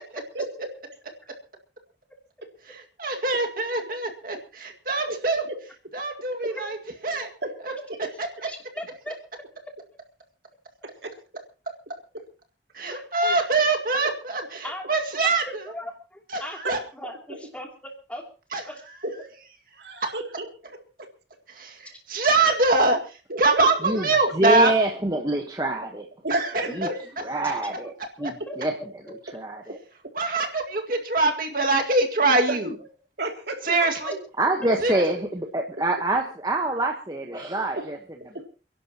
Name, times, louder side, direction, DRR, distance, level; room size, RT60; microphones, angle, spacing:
voice 1, 0.3-0.7 5.5-5.6 7.4-7.6 10.8-11.1 16.6-16.8 17.3-17.4 19.0-19.3 19.8-20.5 23.3-23.7 26.2-27.0 32.5-32.6 33.2-33.7 38.3-38.4, right 2 dB, 75° right, 4 dB, 2.6 m, -31 dB
voice 2, 2.7-5.4 5.9-6.8 7.0-7.3 7.6-7.7 8.2-8.3 12.7-15.6 16.3-16.8 18.5-18.6 20.0-20.1 21.5-24.7 26.3-26.5 26.8-26.9 30.1-32.7 33.6-34.2 34.8-35.0, right 3 dB, 50° right, 3 dB, 2.1 m, -24 dB
voice 3, 8.2-9.2 12.9-13.4 14.6-14.8 15.2-17.7 18.1-18.3 18.7-18.8 22.2-22.5 24.0-24.1 26.7-26.8 28.2-28.6 34.0-34.1 34.6-34.7, equal, 10° left, 2 dB, 2.8 m, -38 dB
voice 4, 24.4-26.1 26.7-26.9 27.2-27.9 28.2-28.7 29.3-29.8 34.4-38.0, right 2 dB, 20° right, 2 dB, 1.2 m, -25 dB
29.0 x 11.5 x 2.9 m, 0.35 s
head